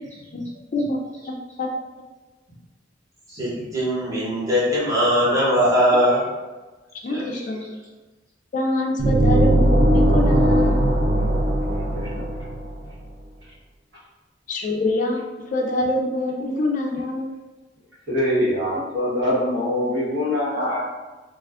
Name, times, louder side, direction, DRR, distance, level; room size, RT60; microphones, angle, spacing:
voice 1, 3.3-6.2 7.1-7.4, equal, 20° right, -9 dB, 1.1 m, -20 dB
voice 2, 7.0-7.6 8.5-11.0 14.5-15.2 15.5-17.3, left 1 dB, 45° left, 1 dB, 0.4 m, -25 dB
sound 1, 9.0-12.8, right 1 dB, 45° right, 0.3 m, -19 dB
voice 3, 11.9-12.2 18.1-20.8, left 1 dB, 65° right, -8 dB, 1.2 m, -23 dB
2.4 x 2.3 x 3.4 m, 1.2 s
head